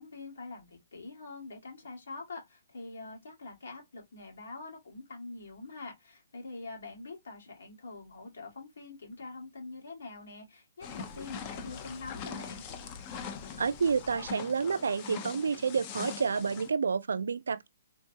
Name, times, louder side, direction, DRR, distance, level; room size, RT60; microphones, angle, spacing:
voice 1, 0.0-12.6, left 3 dB, 75° left, 1.8 m, -45 dB
sound 1, 10.8-16.7, left 7 dB, 25° left, 0.5 m, -42 dB
voice 2, 13.6-17.7, right 5 dB, 85° right, 0.3 m, -29 dB
3.7 x 2.2 x 2.7 m
hypercardioid pair, 160°, 0 cm